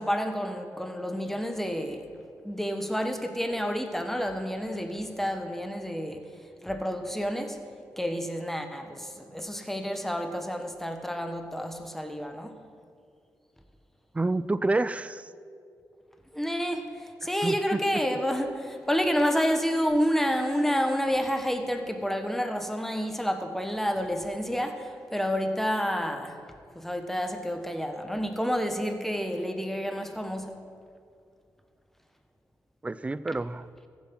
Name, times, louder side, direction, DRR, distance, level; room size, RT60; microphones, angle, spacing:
voice 1, 0.0-2.1 2.4-6.3 6.6-7.6 8.0-12.6 16.3-26.4 26.7-30.7, equal, 5° left, 1.3 m, -29 dB
voice 2, 14.1-15.3 17.4-17.8 32.8-33.7, right 2 dB, 20° right, 0.4 m, -28 dB
14.5 x 7.3 x 6.1 m
cardioid pair, 60°, 7 cm